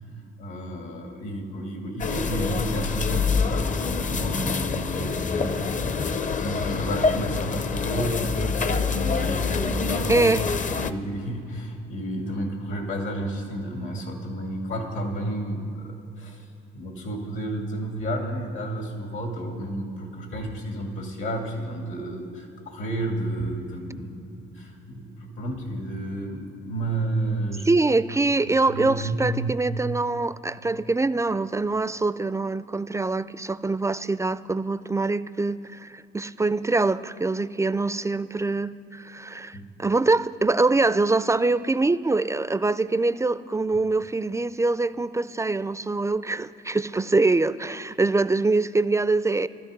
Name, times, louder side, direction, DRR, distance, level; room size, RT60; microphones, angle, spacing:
voice 1, 0.4-10.3 10.8-16.5 16.7-27.7 28.7-29.5 39.5-39.7, right 1 dB, 75° left, 2 dB, 2.7 m, -31 dB
sound 1, 2.0-10.9, left 5 dB, 40° left, 0.6 m, -26 dB
voice 2, 10.1-10.4 27.7-49.5, right 3 dB, 15° right, 15 dB, 0.3 m, -24 dB
15.5 x 13.0 x 5.3 m, 2.8 s
cardioid pair, 90°, 20 cm